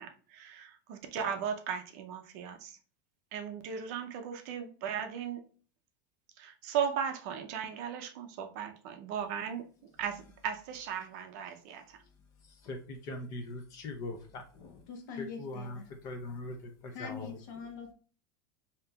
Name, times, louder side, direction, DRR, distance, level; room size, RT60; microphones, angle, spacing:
voice 1, 0.0-2.8 3.3-5.4 6.4-12.0, right 7 dB, 45° right, 5 dB, 0.6 m, -37 dB
voice 2, 12.2-14.9 15.2-17.4, left 2 dB, 30° left, 5 dB, 0.6 m, -42 dB
voice 3, 14.9-15.8 16.9-17.9, left 5 dB, 55° left, 4 dB, 1.0 m, -43 dB
5.1 x 2.8 x 2.3 m, 0.42 s
supercardioid pair, 175°, 12 cm